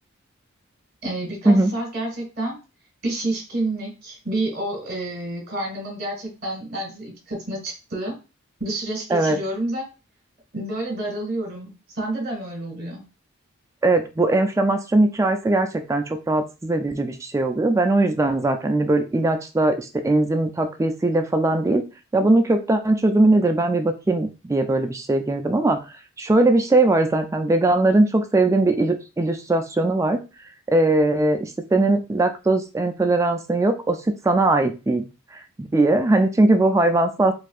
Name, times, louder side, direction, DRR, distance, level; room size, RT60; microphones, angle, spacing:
voice 1, 1.0-2.6 3.0-8.2 8.6-9.8 10.5-13.0, right 1 dB, 45° right, 1 dB, 1.7 m, -29 dB
voice 2, 13.8-21.8 22.1-25.8 26.2-30.2 30.7-35.1 35.6-37.3, right 2 dB, 15° right, 7 dB, 0.3 m, -20 dB
4.1 x 2.7 x 2.4 m, 0.30 s
head